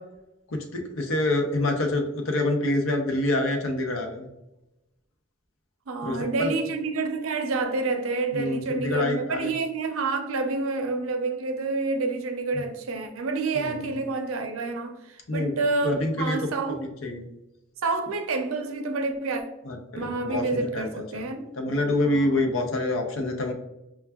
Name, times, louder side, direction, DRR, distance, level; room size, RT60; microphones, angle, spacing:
voice 1, 0.5-4.3 6.0-6.5 8.3-9.5 12.5-12.6 13.5-14.0 15.3-15.5 15.8-16.5 17.0-17.3 19.7-21.3 21.5-23.5, left 1 dB, 80° left, 0.6 m, -27 dB
voice 2, 5.9-16.9 17.8-19.4 19.9-21.4 22.0-22.5, right 3 dB, 90° right, 0.5 m, -28 dB
5.6 x 2.3 x 2.2 m
head